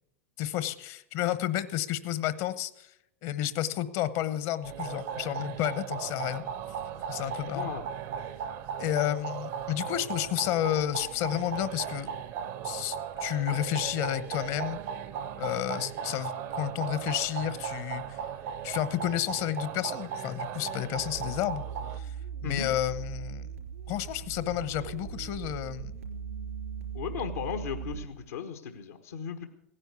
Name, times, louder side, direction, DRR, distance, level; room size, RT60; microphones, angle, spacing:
voice 1, 0.4-2.9 3.2-6.4 7.1-7.7 8.8-12.1 12.6-14.8 15.4-18.3 18.6-21.6 21.9-22.1 22.4-23.5 23.9-25.9, left 13 dB, 55° left, 15 dB, 1.0 m, -31 dB
sound 1, 4.6-22.0, right 7 dB, 50° right, 0.9 m, -37 dB
voice 2, 7.5-7.9 22.4-22.7 26.9-29.4, left 7 dB, 85° left, 6 dB, 1.2 m, -36 dB
sound 2, 20.9-28.0, right 7 dB, 80° right, 3.7 m, -39 dB
16.5 x 10.0 x 7.0 m, 0.78 s
hypercardioid pair, 100°, 7 cm